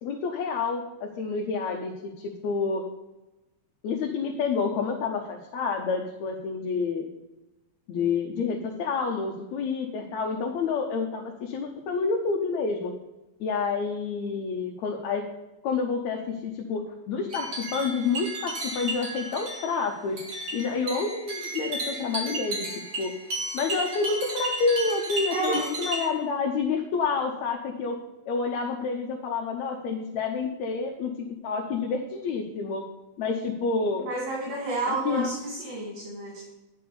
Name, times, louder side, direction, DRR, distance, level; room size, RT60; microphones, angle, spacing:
voice 1, 0.0-1.9 2.2-2.8 3.8-7.1 7.9-12.9 13.4-15.2 15.6-16.8 17.1-20.2 20.5-23.1 23.5-28.0 28.3-32.8 33.2-34.1 34.9-35.3, left 4 dB, 75° left, 2 dB, 2.2 m, -28 dB
sound 1, 17.3-26.1, right 2 dB, 45° right, 3.4 m, -34 dB
voice 2, 34.0-36.5, right 3 dB, 65° right, -5 dB, 3.8 m, -31 dB
9.3 x 6.0 x 7.0 m, 1.0 s
omnidirectional pair, 3.3 m